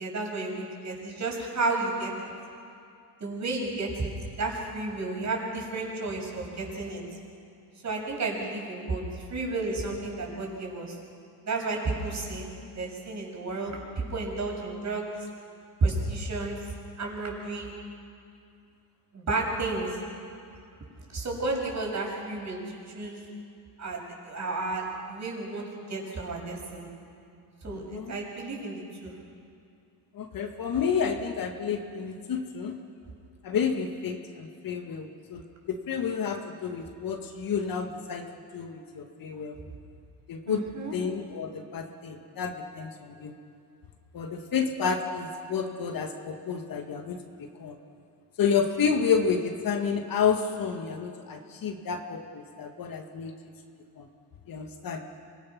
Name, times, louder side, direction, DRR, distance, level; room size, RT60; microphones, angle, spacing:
voice 1, 0.0-2.1 3.2-4.1 4.4-7.0 7.8-10.9 11.4-15.1 15.8-16.6 17.0-17.7 19.1-19.9 21.1-23.2 23.8-26.9 27.6-29.1 40.5-40.9, right 3 dB, 40° right, -1 dB, 6.7 m, -32 dB
voice 2, 27.7-28.1 30.1-32.8 33.4-38.3 38.5-39.6 40.3-40.6 40.9-43.3 44.1-47.2 47.6-47.8 48.4-53.4 54.0-54.1 54.5-55.0, left 6 dB, 50° left, 4 dB, 2.0 m, -30 dB
25.0 x 19.5 x 6.1 m, 2.5 s
supercardioid pair, 90°, 45 cm